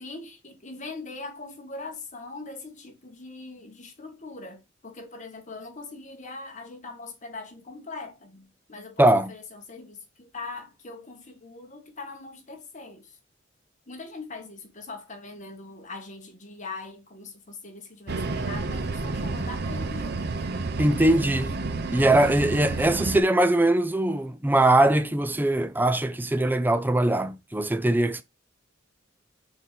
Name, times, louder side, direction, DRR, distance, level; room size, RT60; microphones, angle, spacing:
voice 1, 0.0-13.2 13.9-20.5, left 3 dB, 40° left, 1.7 m, -41 dB
voice 2, 9.0-9.3 20.8-21.5 21.9-28.2, right 1 dB, 10° right, 0.5 m, -21 dB
sound 1, 18.1-23.2, right 3 dB, 55° right, 0.7 m, -30 dB
5.5 x 4.4 x 3.9 m
head